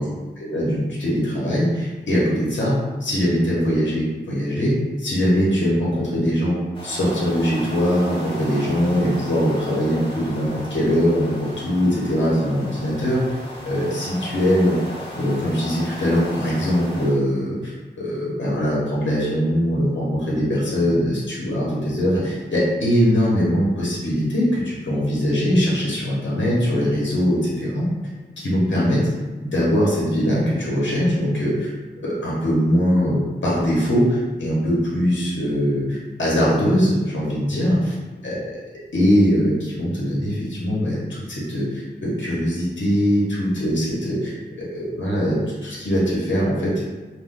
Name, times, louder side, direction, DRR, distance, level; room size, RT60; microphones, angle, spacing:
voice 1, 0.4-6.6 6.8-13.2 13.6-14.8 15.2-17.7 18.0-27.9 28.4-29.1 29.4-31.7 32.0-37.8 38.2-38.4 38.9-46.8, equal, 85° left, -6 dB, 0.9 m, -21 dB
sound 1, 6.7-17.2, equal, 30° left, 0.7 m, -36 dB
2.3 x 2.2 x 3.6 m, 1.3 s
wide cardioid pair, 90°, 19 cm